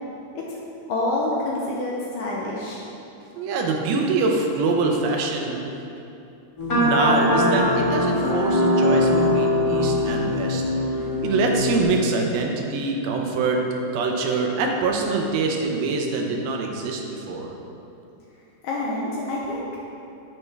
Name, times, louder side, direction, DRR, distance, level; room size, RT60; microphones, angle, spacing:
voice 1, 0.9-2.8 18.6-19.7, left 2 dB, 75° left, -4 dB, 2.0 m, -27 dB
voice 2, 3.4-5.8 6.7-10.6 11.2-13.6 13.9-17.5, right 3 dB, 80° right, 1 dB, 2.5 m, -24 dB
sound 1, 6.6-11.8, left 1 dB, 60° left, 0.9 m, -21 dB
11.5 x 5.7 x 3.3 m, 2.7 s
omnidirectional pair, 4.5 m